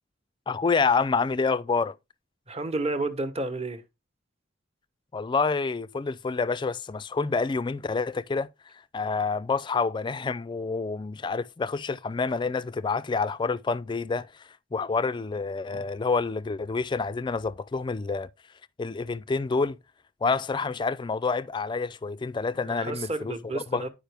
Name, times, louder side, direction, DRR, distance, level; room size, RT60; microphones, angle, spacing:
voice 1, 0.5-2.0 5.1-8.5 8.9-18.3 18.8-19.8 20.2-23.8, left 4 dB, 25° left, 0.3 m, -28 dB
voice 2, 2.5-3.8 22.6-23.9, right 2 dB, 30° right, 1.0 m, -31 dB
10.5 x 5.0 x 3.4 m
head